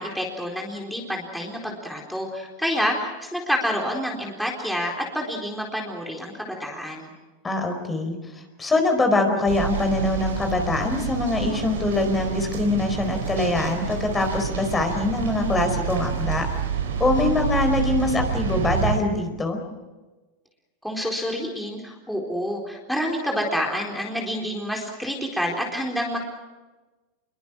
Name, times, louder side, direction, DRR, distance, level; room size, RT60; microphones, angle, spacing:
voice 1, 0.0-7.1 20.8-26.2, equal, ahead, -1 dB, 4.2 m, -28 dB
voice 2, 7.4-16.5 17.0-19.6, left 2 dB, 15° left, 5 dB, 4.5 m, -23 dB
sound 1, 9.5-19.0, right 7 dB, 80° right, 4.4 m, -28 dB
26.0 x 23.5 x 6.2 m, 1.2 s
hypercardioid pair, 100°, 0 cm